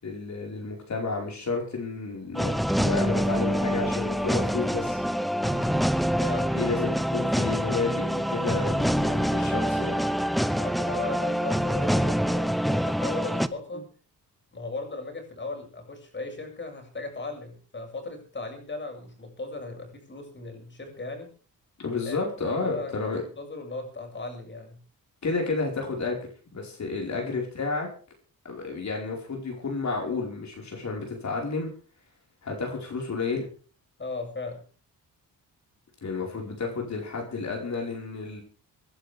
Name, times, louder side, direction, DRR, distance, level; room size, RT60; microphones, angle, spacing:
voice 1, 0.0-5.0 6.5-10.0 13.7-13.8 21.8-23.2 25.2-27.9 28.4-31.7 32.4-33.5 36.0-38.4, left 4 dB, 50° left, 0 dB, 5.0 m, -31 dB
sound 1, 2.3-13.5, equal, ahead, 0.7 m, -26 dB
voice 2, 5.4-5.8 6.2-6.7 10.6-13.8 14.5-21.3 22.0-22.2 22.5-24.8 27.1-27.4 34.0-34.6, left 3 dB, 30° left, 3 dB, 7.1 m, -37 dB
25.5 x 11.5 x 3.6 m, 0.39 s
cardioid pair, 105°, 37 cm